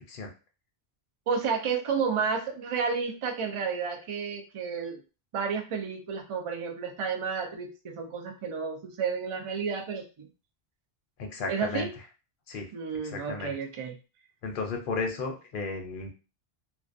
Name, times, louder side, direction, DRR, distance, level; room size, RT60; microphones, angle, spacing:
voice 1, 1.3-5.0 5.3-10.3 11.5-11.9 12.7-14.0, right 6 dB, 55° right, 3 dB, 0.3 m, -31 dB
voice 2, 11.2-11.9 12.5-12.7 13.0-13.5 14.4-16.1, left 4 dB, 60° left, 3 dB, 0.7 m, -34 dB
2.3 x 2.2 x 2.4 m, 0.32 s
omnidirectional pair, 1.1 m